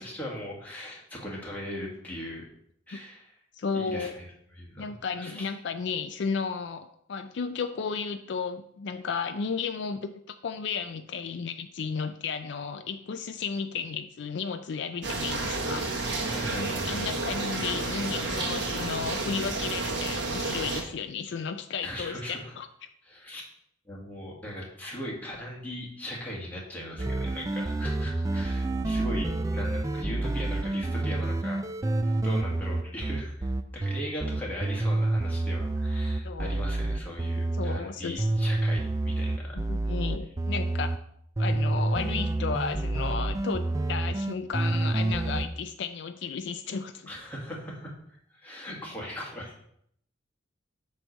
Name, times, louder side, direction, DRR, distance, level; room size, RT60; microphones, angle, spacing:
voice 1, 0.0-2.5 2.9-3.3 3.7-4.3 4.5-5.5 16.3-17.1 21.8-22.5 23.0-23.4 23.8-31.6 32.2-39.6 47.1-48.0 48.3-49.5, equal, 10° left, -4 dB, 1.8 m, -39 dB
voice 2, 3.5-4.2 4.8-10.1 10.4-15.9 16.5-22.7 36.2-36.6 37.6-38.3 39.5-40.9 41.4-47.1, left 5 dB, 60° left, 8 dB, 0.4 m, -33 dB
sound 1, 15.0-20.8, right 3 dB, 60° right, 1.1 m, -31 dB
sound 2, 27.0-37.8 38.2-41.0 41.4-45.5, right 2 dB, 15° right, 0.3 m, -28 dB
7.8 x 3.2 x 6.2 m, 0.70 s
head